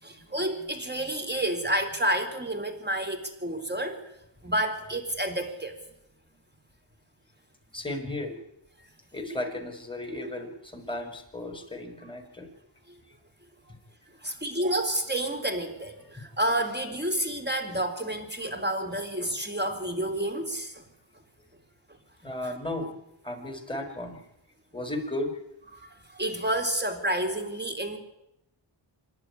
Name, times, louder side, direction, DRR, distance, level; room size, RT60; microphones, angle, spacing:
voice 1, 0.0-4.0 4.4-5.8 14.2-20.8 22.4-22.5 25.7-28.0, right 1 dB, 20° right, 7 dB, 4.1 m, -30 dB
voice 2, 7.7-8.4 9.1-12.5 22.2-22.9 23.2-24.2 24.7-25.4, left 1 dB, 10° left, 5 dB, 5.4 m, -34 dB
26.0 x 11.5 x 9.9 m, 0.85 s
cardioid pair, 65°, 49 cm